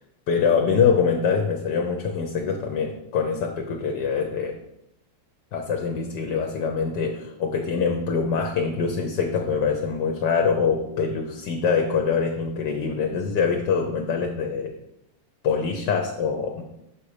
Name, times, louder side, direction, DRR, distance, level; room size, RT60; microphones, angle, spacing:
voice 1, 0.3-4.5 5.5-14.7 15.4-16.6, left 5 dB, 65° left, 3 dB, 1.4 m, -24 dB
6.0 x 5.6 x 4.9 m, 0.84 s
omnidirectional pair, 2.1 m